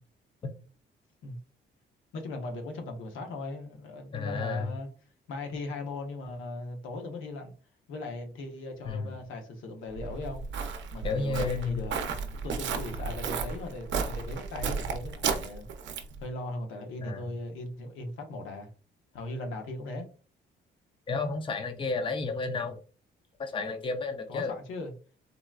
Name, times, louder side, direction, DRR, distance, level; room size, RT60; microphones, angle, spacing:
voice 1, 2.1-4.9 5.3-7.5 7.9-10.4 10.9-15.7 16.2-18.7 19.1-20.1 24.3-24.9, left 2 dB, 80° left, 0.8 m, -38 dB
voice 2, 4.1-4.7 8.9-9.1 11.0-11.8 17.0-17.2 21.1-22.8 23.4-24.5, left 4 dB, 25° left, 0.5 m, -32 dB
Walk footsteps, 9.9-16.2, right 5 dB, 65° right, 0.5 m, -33 dB
3.8 x 2.2 x 2.3 m
cardioid pair, 90°, 20 cm